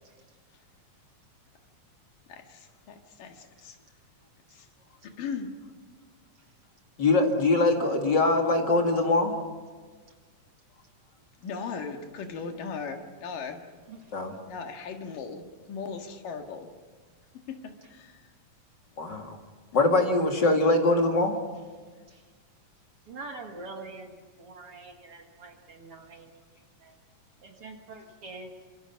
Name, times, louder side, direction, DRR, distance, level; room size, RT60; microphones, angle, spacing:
voice 1, 2.3-3.8 4.5-4.7 5.0-5.5 11.4-13.6 14.5-16.7 17.5-18.3, left 5 dB, 80° left, 5 dB, 3.4 m, -38 dB
voice 2, 7.0-9.3 14.1-14.3 19.0-19.4 19.7-21.4, left 2 dB, 35° left, 3 dB, 2.5 m, -23 dB
voice 3, 23.1-24.1 24.4-26.4 26.8-26.9 27.4-28.7, right 3 dB, 50° right, 3 dB, 2.5 m, -44 dB
28.5 x 25.5 x 5.9 m, 1.5 s
omnidirectional pair, 3.8 m